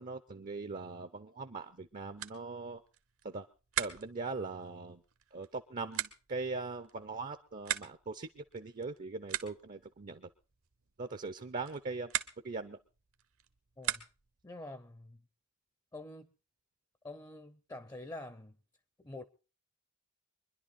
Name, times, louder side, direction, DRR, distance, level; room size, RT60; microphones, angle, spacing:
voice 1, 0.0-2.8 3.2-3.5 3.8-5.0 5.3-10.3 11.0-12.1 12.4-12.8, right 3 dB, 40° right, 0.6 m, -41 dB
sound 1, 1.6-14.5, right 11 dB, 65° right, 1.0 m, -43 dB
voice 2, 13.8-14.1 14.4-15.2 15.9-16.3 17.0-18.6 19.0-19.3, left 2 dB, 15° left, 0.7 m, -46 dB
24.0 x 11.0 x 4.2 m
head